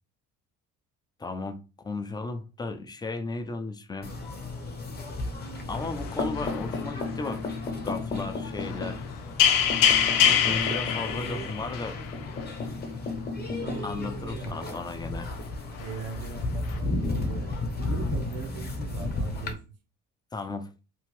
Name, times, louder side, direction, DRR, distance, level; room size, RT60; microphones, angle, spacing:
voice 1, 1.2-1.6 1.8-4.1 5.7-9.0 10.4-12.0 13.8-15.3 20.3-20.7, left 3 dB, 15° left, 0.3 m, -35 dB
sound 1, 4.0-19.5, left 2 dB, 30° left, 0.8 m, -33 dB
sound 2, 5.7-7.0 8.6-9.0 9.4-12.2 12.4-12.5 15.8-16.0 16.7-16.8, left 9 dB, 75° left, 0.5 m, -25 dB
voice 2, 10.2-10.8 11.1-11.5 13.4-14.8 15.8-19.6, right 5 dB, 85° right, 0.8 m, -40 dB
2.8 x 2.5 x 3.1 m
cardioid pair, 105°, 33 cm